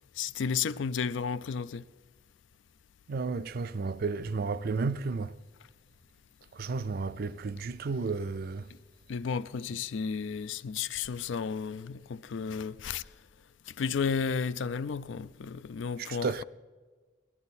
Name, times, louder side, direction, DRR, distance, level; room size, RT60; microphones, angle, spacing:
voice 1, 0.2-1.8 9.1-13.0 13.7-16.4, left 6 dB, 70° left, 0.4 m, -33 dB
voice 2, 3.1-5.3 6.6-8.7 16.0-16.4, right 4 dB, 50° right, 0.4 m, -32 dB
19.0 x 12.5 x 4.1 m
head